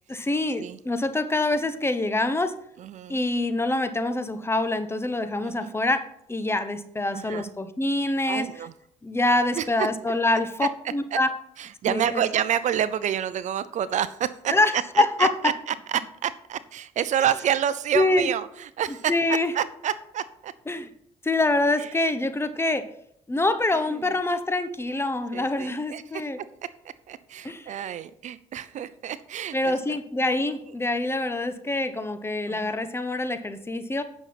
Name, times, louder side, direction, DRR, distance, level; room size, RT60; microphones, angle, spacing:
voice 1, 0.1-2.6 3.1-6.0 6.3-8.5 9.0-11.3 11.8-12.2 14.5-15.3 17.9-18.3 19.1-19.5 20.7-20.9 21.2-22.9 23.3-26.4 27.4-27.7 29.5-34.0, left 2 dB, 15° left, 10 dB, 1.1 m, -25 dB
voice 2, 2.8-3.2 5.4-5.7 7.1-7.5 8.3-8.7 9.5-9.9 10.6-10.7 11.1-11.2 11.6-14.5 14.9-20.5 21.8-21.9 23.9-24.1 25.3-26.2 27.1-30.0 32.5-32.8, right 10 dB, 60° right, 15 dB, 0.6 m, -29 dB
9.1 x 6.5 x 5.9 m, 0.70 s
supercardioid pair, 75°, 14 cm